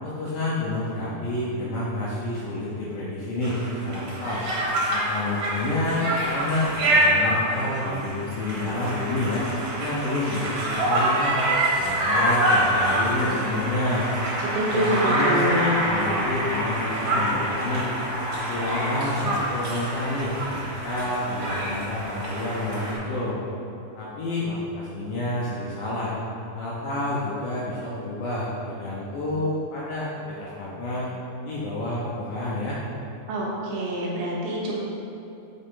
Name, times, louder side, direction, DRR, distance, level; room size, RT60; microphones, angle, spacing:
voice 1, 0.0-4.4 4.9-9.5 9.8-11.4 11.8-14.1 14.7-17.9 18.3-23.4 23.9-26.1 26.5-31.1 31.5-32.8, left 1 dB, 75° left, -7 dB, 2.2 m, -29 dB
Conversation, 3.4-23.0, right 1 dB, 55° right, 2.9 m, -26 dB
voice 2, 14.5-15.7 33.3-34.8, right 1 dB, 75° right, -5 dB, 2.9 m, -26 dB
6.6 x 5.7 x 3.7 m, 2.9 s
omnidirectional pair, 5.0 m